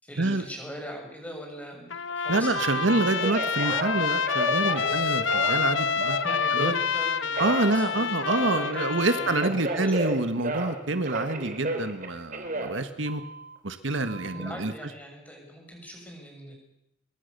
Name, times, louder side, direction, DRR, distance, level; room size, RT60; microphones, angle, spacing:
voice 1, 0.0-3.3 6.2-10.3 14.3-16.5, equal, 10° left, 1 dB, 6.9 m, -41 dB
Trumpet, 1.9-9.5, left 6 dB, 75° left, 1.0 m, -28 dB
voice 2, 2.3-6.2 6.5-6.7 7.4-13.2 13.6-14.7, right 2 dB, 75° right, 9 dB, 1.7 m, -27 dB
Telephone, 2.5-6.9 7.3-10.8 11.0-13.6 14.1-14.6, right 2 dB, 45° right, 3.4 m, -33 dB
24.0 x 22.5 x 6.9 m, 0.84 s
head